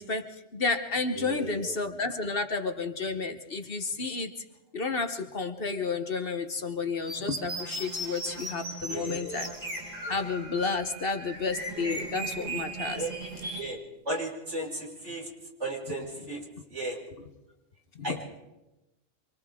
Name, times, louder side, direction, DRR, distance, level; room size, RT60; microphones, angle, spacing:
voice 1, 0.0-4.3 4.7-9.5 10.1-13.1 16.2-16.3 17.9-18.2, left 4 dB, 50° left, 8 dB, 1.3 m, -31 dB
voice 2, 1.1-1.8 8.9-9.5 11.7-12.0 12.5-12.6 12.9-13.1 13.5-13.8 14.0-15.3 15.6-16.4 16.7-17.0 18.0-18.2, right 1 dB, 70° right, -3 dB, 6.2 m, -35 dB
sound 1, 7.0-13.6, right 2 dB, 90° right, 6.3 m, -37 dB
27.5 x 25.5 x 3.7 m, 0.97 s
omnidirectional pair, 1.3 m